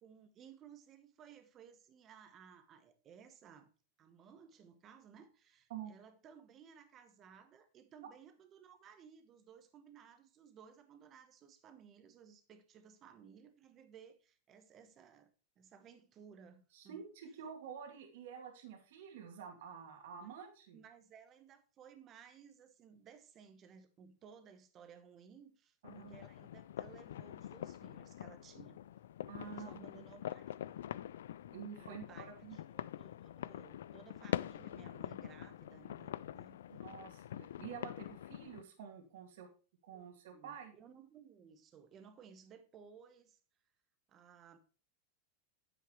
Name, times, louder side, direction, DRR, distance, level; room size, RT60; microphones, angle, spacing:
voice 1, 0.0-3.7 4.0-17.0 20.2-20.3 20.7-28.9 29.4-30.8 31.8-36.6 39.9-43.4 44.1-44.6, right 7 dB, 30° right, 1.2 m, -59 dB
voice 2, 16.7-20.8 25.8-26.2 29.3-30.0 31.5-32.6 36.7-39.5 39.8-40.7, right 7 dB, 70° right, 2.2 m, -49 dB
sound 1, 25.8-38.6, left 11 dB, 90° left, 0.3 m, -45 dB
9.4 x 7.6 x 3.1 m
supercardioid pair, 145°, 0 cm